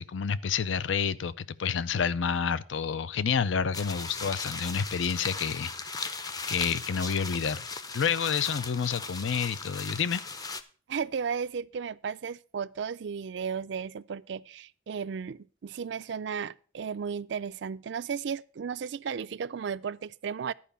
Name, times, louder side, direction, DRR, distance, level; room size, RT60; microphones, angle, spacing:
voice 1, 0.0-6.2 6.5-7.6 7.9-10.2, left 6 dB, 85° left, 0.5 m, -29 dB
sound 1, 3.7-10.6, left 4 dB, 20° left, 0.5 m, -37 dB
voice 2, 10.9-20.5, right 6 dB, 70° right, 0.4 m, -34 dB
11.0 x 5.0 x 6.7 m
head